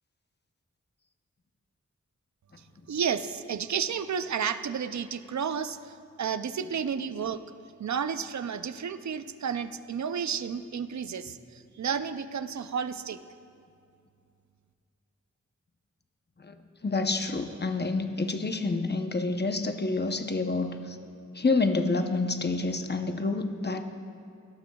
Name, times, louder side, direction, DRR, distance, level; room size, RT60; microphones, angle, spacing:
voice 1, 2.9-7.4 7.8-13.2, right 7 dB, 65° right, 12 dB, 0.5 m, -32 dB
voice 2, 16.8-21.0 21.3-23.8, left 3 dB, 35° left, 6 dB, 0.8 m, -28 dB
18.0 x 12.0 x 2.3 m, 2.4 s
wide cardioid pair, 65°, 30 cm